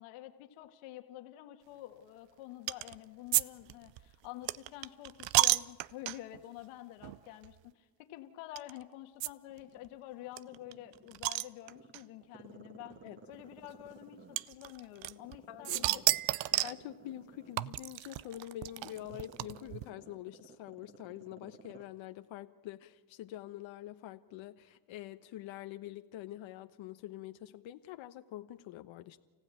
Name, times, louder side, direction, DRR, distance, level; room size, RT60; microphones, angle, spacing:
voice 1, 0.0-13.0 13.3-16.0 16.5-16.7, left 15 dB, 85° left, 7 dB, 2.1 m, -48 dB
sound 1, 2.7-3.0 3.3-6.4 7.0-7.2 7.4-7.5 8.6-8.7 9.2-9.3 9.6-9.7 9.9-10.0 10.4-12.0 12.9-13.0 14.4-15.4 15.7-16.8 17.6-19.8, right 17 dB, 65° right, 0.7 m, -31 dB
Growling, 9.5-11.2 11.7-14.7 15.1-21.9 22.2-22.3, right 3 dB, 25° right, 2.3 m, -55 dB
voice 2, 15.5-16.0 16.6-29.2, left 13 dB, 65° left, 8 dB, 1.2 m, -46 dB
30.0 x 15.5 x 9.2 m, 1.4 s
supercardioid pair, 90°, 49 cm